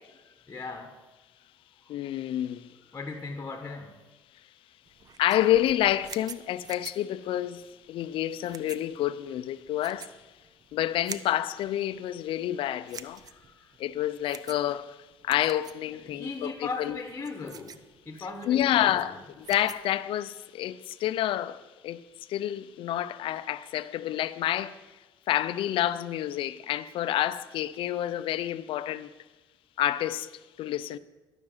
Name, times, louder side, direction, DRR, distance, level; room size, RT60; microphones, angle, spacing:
voice 1, 0.2-0.9 1.8-1.9 2.9-4.0 13.3-13.7 15.9-17.8 18.0-19.2, left 3 dB, 20° left, 1.3 m, -38 dB
voice 2, 1.9-2.7 5.2-10.2 10.7-13.2 13.8-15.0 15.2-17.0 18.5-22.0 22.3-24.8 25.3-29.1 29.8-30.3 30.6-31.0, left 12 dB, 70° left, 0.5 m, -28 dB
sound 1, 4.9-20.0, right 7 dB, 40° right, 0.6 m, -48 dB
12.0 x 6.0 x 8.9 m
cardioid pair, 105°, 9 cm